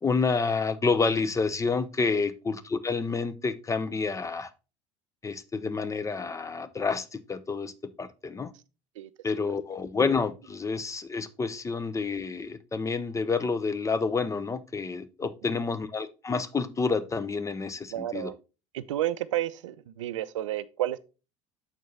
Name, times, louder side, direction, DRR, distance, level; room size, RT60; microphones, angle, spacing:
voice 1, 0.0-4.5 5.2-8.5 9.2-18.3, left 4 dB, 20° left, 0.7 m, -29 dB
voice 2, 9.0-9.5 15.4-15.6 17.9-18.4 18.7-21.0, right 13 dB, 75° right, 0.5 m, -32 dB
7.4 x 4.6 x 4.0 m
figure-of-eight pair, 65°, 16 cm